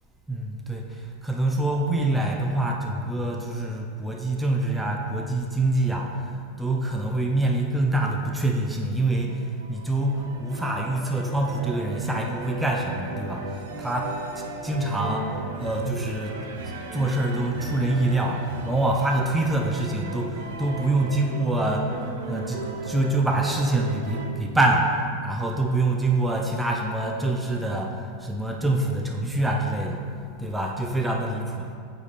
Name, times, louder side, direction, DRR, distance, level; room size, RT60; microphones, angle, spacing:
voice 1, 0.3-6.3 6.6-9.4 9.7-15.3 15.6-16.4 16.6-21.9 22.3-25.0 25.2-30.0 30.4-31.8, right 2 dB, 10° right, 1 dB, 0.6 m, -25 dB
sound 1, 9.3-24.3, right 2 dB, 75° right, 0.8 m, -36 dB
8.5 x 4.2 x 3.4 m, 2.4 s
hypercardioid pair, 105°, 0 cm